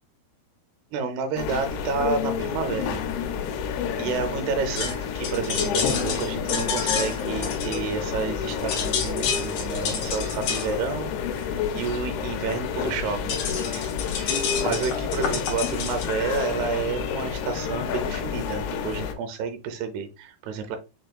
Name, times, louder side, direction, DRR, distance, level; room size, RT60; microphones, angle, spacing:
voice 1, 0.9-3.0 3.9-13.4 13.7-13.9 14.2-20.8, right 5 dB, 80° right, 7 dB, 2.6 m, -30 dB
sound 1, 1.4-19.1, left 7 dB, 90° left, 2.6 m, -30 dB
sound 2, 4.8-8.3 8.6-16.1, left 6 dB, 70° left, 1.8 m, -30 dB
6.7 x 2.4 x 2.2 m, 0.29 s
omnidirectional pair, 4.6 m